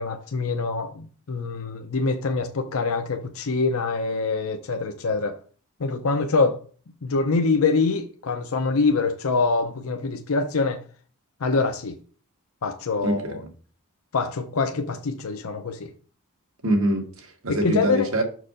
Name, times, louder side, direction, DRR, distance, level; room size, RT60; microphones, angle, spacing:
voice 1, 0.0-5.3 5.8-6.6 7.0-10.8 11.4-12.0 12.6-13.4 14.1-15.9 17.5-18.1, left 4 dB, 75° left, 0.6 m, -25 dB
voice 2, 13.0-13.5 16.6-18.2, right 1 dB, 65° right, 1.6 m, -24 dB
6.4 x 4.8 x 4.9 m
head